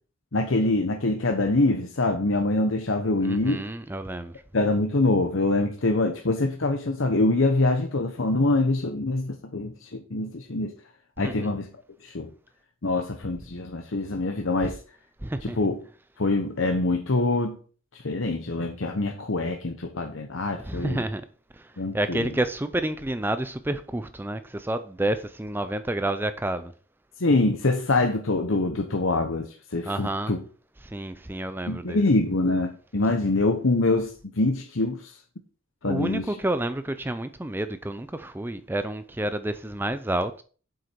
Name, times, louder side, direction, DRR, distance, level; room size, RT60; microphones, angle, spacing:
voice 1, 0.3-3.6 4.5-10.7 11.2-11.7 12.0-12.3 12.8-14.8 15.4-15.8 16.2-17.6 17.9-21.0 21.8-22.3 27.2-30.4 31.7-35.1 35.8-36.3, left 2 dB, 75° left, 1.1 m, -25 dB
voice 2, 3.2-4.3 11.2-11.5 14.6-14.7 15.2-15.6 20.6-21.2 21.9-26.7 29.9-30.3 30.8-32.0 35.8-40.4, right 1 dB, 10° right, 0.5 m, -29 dB
8.0 x 7.8 x 4.6 m
head